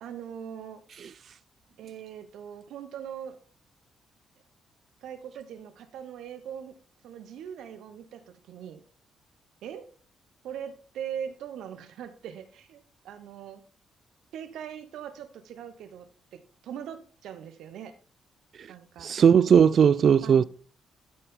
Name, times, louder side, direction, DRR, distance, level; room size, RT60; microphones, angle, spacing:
voice 1, 0.0-0.8 1.8-3.3 5.0-6.7 7.0-8.8 9.6-9.9 10.4-12.8 13.0-13.6 14.3-16.1 16.3-17.9 18.7-19.1 20.2-20.4, right 9 dB, 80° right, 1.0 m, -41 dB
voice 2, 19.0-20.4, right 7 dB, 60° right, 0.3 m, -18 dB
12.0 x 4.4 x 3.7 m
supercardioid pair, 60°, 0 cm